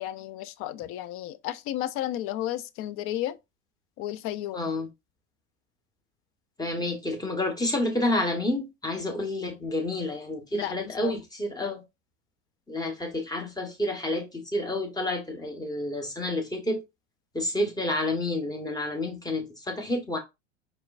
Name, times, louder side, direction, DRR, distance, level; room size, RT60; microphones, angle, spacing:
voice 1, 0.0-3.4 4.0-4.7 10.5-11.1, left 13 dB, 40° left, 0.4 m, -33 dB
voice 2, 4.5-4.9 6.6-11.8 12.7-16.8 17.3-20.2, left 1 dB, 10° left, 1.3 m, -29 dB
4.4 x 3.2 x 2.5 m
hypercardioid pair, 80°, 36 cm